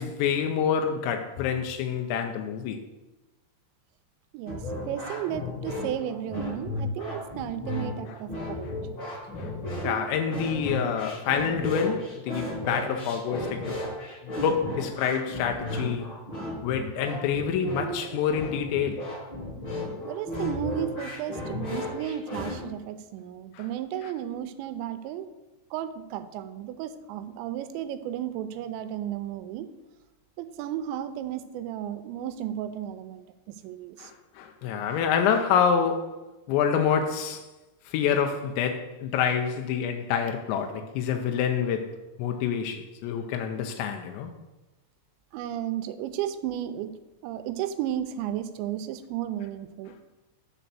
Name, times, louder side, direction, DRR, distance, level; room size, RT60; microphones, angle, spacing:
voice 1, 0.0-2.8 9.0-9.5 9.8-13.8 14.2-16.1 16.6-19.1 23.5-23.7 34.0-37.4 37.9-44.3, left 7 dB, 90° left, 2.9 m, -27 dB
voice 2, 4.3-8.8 20.0-25.3 25.7-29.7 30.4-34.1 45.3-46.9 47.2-50.0, right 11 dB, 85° right, 2.8 m, -34 dB
sound 1, 4.5-22.6, left 1 dB, 35° left, 2.3 m, -34 dB
10.0 x 4.0 x 6.9 m
omnidirectional pair, 5.1 m